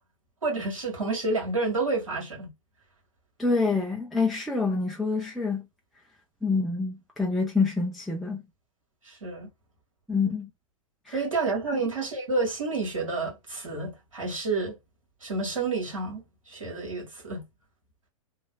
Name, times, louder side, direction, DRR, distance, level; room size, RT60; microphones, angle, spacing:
voice 1, 0.4-2.5 9.0-9.5 11.1-14.8 15.2-17.4, right 3 dB, 75° right, 1.8 m, -29 dB
voice 2, 3.4-5.7 6.4-8.4 10.1-10.5 11.1-11.2 11.7-11.8, left 4 dB, ahead, 0.4 m, -27 dB
3.2 x 2.3 x 2.2 m
figure-of-eight pair, 100°, 17 cm